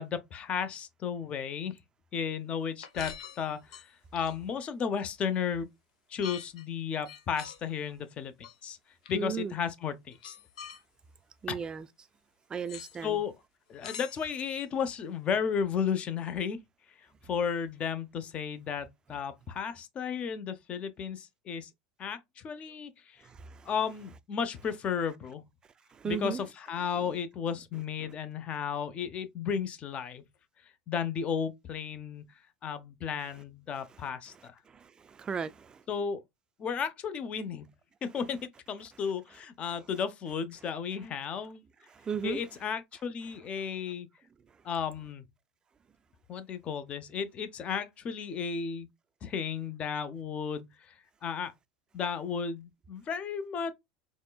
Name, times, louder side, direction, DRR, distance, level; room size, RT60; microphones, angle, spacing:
voice 1, 0.0-1.8 2.1-3.9 4.1-5.7 6.1-8.3 8.6-8.8 9.1-10.4 11.5-11.6 13.0-13.3 13.7-16.6 17.2-21.7 22.0-23.2 23.6-25.4 26.0-30.2 30.9-32.2 32.6-34.6 35.9-36.2 36.6-37.7 38.0-41.6 42.2-44.1 44.6-45.3 46.3-48.9 49.2-51.0 51.2-51.5 51.9-53.7, left 7 dB, 35° left, 0.7 m, -34 dB
sound 1, 2.8-4.6 6.2-6.7 7.1-7.6 8.4-8.6 9.0-9.1 10.1-10.8 12.7-13.0 13.8-14.6, left 8 dB, 85° left, 0.8 m, -45 dB
voice 2, 9.1-9.5 11.4-11.9 12.5-13.2 23.2-23.7 25.9-26.4 28.0-28.1 34.7-35.8 41.9-42.4, right 7 dB, 20° right, 0.4 m, -36 dB
4.2 x 3.0 x 2.3 m
supercardioid pair, 110°, 4 cm